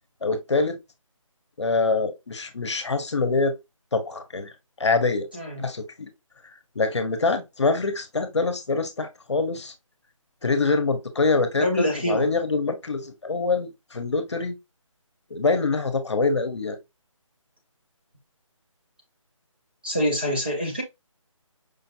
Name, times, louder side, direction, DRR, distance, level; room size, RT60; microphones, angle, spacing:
voice 1, 0.2-0.8 1.6-3.5 3.9-4.5 4.8-5.3 5.6-6.1 6.4-9.7 10.4-14.5 15.3-16.8, left 3 dB, 55° left, 0.8 m, -25 dB
voice 2, 11.6-12.3 19.8-20.8, equal, 20° right, 0.5 m, -25 dB
5.1 x 2.5 x 2.6 m
figure-of-eight pair, 175°, 17 cm